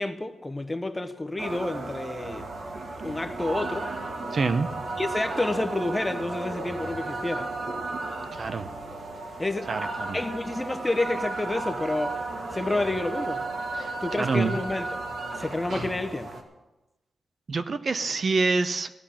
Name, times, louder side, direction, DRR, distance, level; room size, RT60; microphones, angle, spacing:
voice 1, 0.0-2.5 3.0-3.9 5.0-7.5 9.4-9.7 10.1-12.2 12.5-13.4 14.0-15.0 15.3-16.4, left 2 dB, 15° left, 0.7 m, -29 dB
sound 1, 1.4-16.4, right 2 dB, 60° right, 2.0 m, -34 dB
voice 2, 4.3-4.7 8.3-8.7 9.7-10.2 13.8-13.9 14.2-14.6 17.5-18.9, right 4 dB, 40° right, 0.6 m, -26 dB
16.5 x 5.9 x 9.9 m
wide cardioid pair, 175°, 0 cm